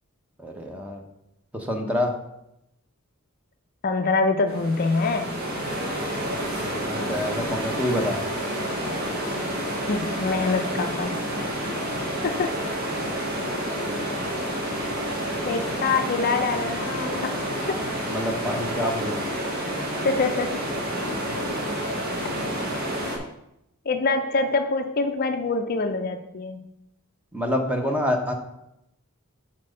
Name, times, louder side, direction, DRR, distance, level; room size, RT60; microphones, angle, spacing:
voice 1, 0.4-1.0 1.5-2.1 6.6-8.2 18.1-19.2 27.3-28.3, left 1 dB, 5° right, 2 dB, 0.9 m, -27 dB
voice 2, 3.8-5.4 9.9-11.2 12.2-12.6 15.4-17.4 17.7-17.9 20.0-20.6 23.9-26.7, left 3 dB, 45° left, 7 dB, 0.4 m, -25 dB
sound 1, 4.5-23.2, equal, 45° right, 1.5 m, -29 dB
5.9 x 4.5 x 6.3 m, 0.83 s
head